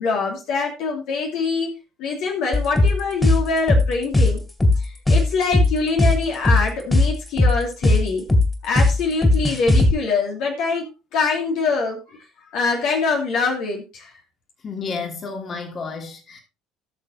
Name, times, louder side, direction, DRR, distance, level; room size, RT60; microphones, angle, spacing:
voice 1, 0.0-1.7 2.0-4.4 4.8-8.3 8.6-10.9 11.1-12.0 12.5-14.1, left 4 dB, 55° left, 2.5 m, -24 dB
sound 1, 2.5-9.9, left 2 dB, 15° left, 2.9 m, -17 dB
voice 2, 14.6-16.4, left 4 dB, 35° left, 2.7 m, -31 dB
18.0 x 6.7 x 2.8 m
figure-of-eight pair, 60°, 0 cm